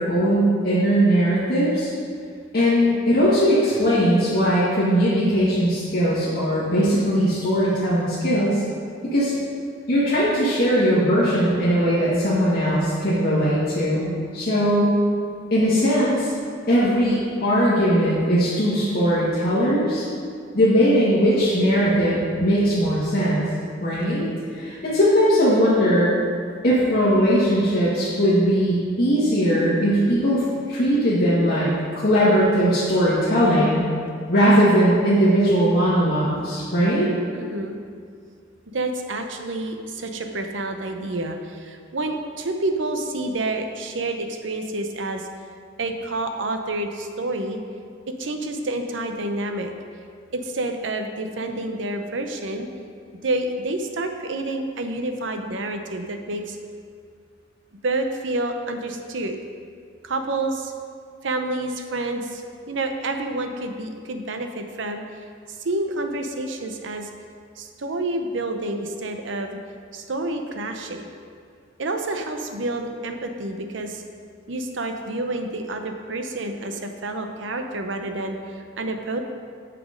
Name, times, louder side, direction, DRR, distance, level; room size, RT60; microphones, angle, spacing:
voice 1, 0.0-1.9 2.5-8.6 9.1-9.3 9.9-15.0 15.5-16.3 16.7-20.0 20.5-23.4 23.8-24.2 24.5-26.1 26.6-30.4 30.7-31.7 31.9-33.8 34.3-37.1, equal, 50° left, -10 dB, 1.7 m, -19 dB
voice 2, 37.3-37.8 38.7-45.3 45.8-47.6 48.2-49.7 50.3-52.7 53.2-56.6 57.8-59.4 60.0-60.7 61.2-62.4 62.7-65.0 65.6-67.1 67.6-69.6 69.9-71.1 71.8-74.0 74.5-78.4 78.8-79.2, right 2 dB, 75° right, 5 dB, 0.7 m, -28 dB
8.0 x 6.0 x 5.1 m, 2.2 s
head